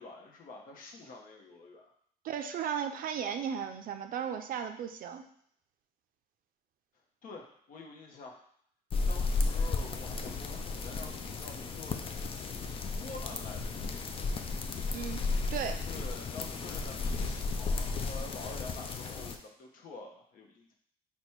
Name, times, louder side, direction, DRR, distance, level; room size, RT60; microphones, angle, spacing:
voice 1, 0.0-1.9 7.2-8.4 9.1-14.3 15.9-20.7, left 3 dB, 55° left, 1 dB, 0.9 m, -48 dB
voice 2, 2.2-5.2 14.9-15.2 15.5-15.8, right 8 dB, 55° right, 7 dB, 0.4 m, -35 dB
sound 1, 8.9-19.4, left 3 dB, 35° left, 0.4 m, -34 dB
4.1 x 2.3 x 4.5 m, 0.65 s
cardioid pair, 110°, 17 cm